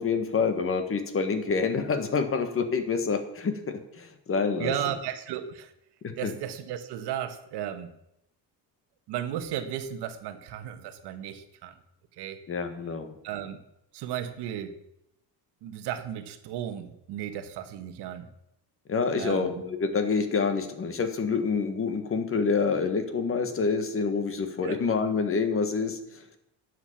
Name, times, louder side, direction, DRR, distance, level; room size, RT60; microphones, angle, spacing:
voice 1, 0.0-4.7 6.0-6.3 12.5-13.1 18.9-26.2, left 5 dB, 30° left, 8 dB, 1.5 m, -27 dB
voice 2, 4.6-5.7 6.2-7.9 9.1-11.7 12.2-12.4 13.2-13.6 13.9-14.8 15.6-18.3 19.2-19.6 24.6-24.8, right 10 dB, 70° right, 9 dB, 1.4 m, -34 dB
10.5 x 7.9 x 7.3 m, 0.80 s
cardioid pair, 135°, 41 cm